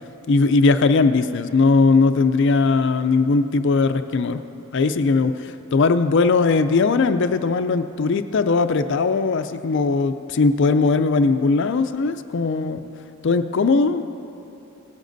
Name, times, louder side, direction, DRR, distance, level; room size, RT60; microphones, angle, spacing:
voice 1, 0.3-4.4 4.7-12.8 13.2-14.0, left 4 dB, 55° left, 10 dB, 0.4 m, -19 dB
17.5 x 12.5 x 2.6 m, 3.0 s
head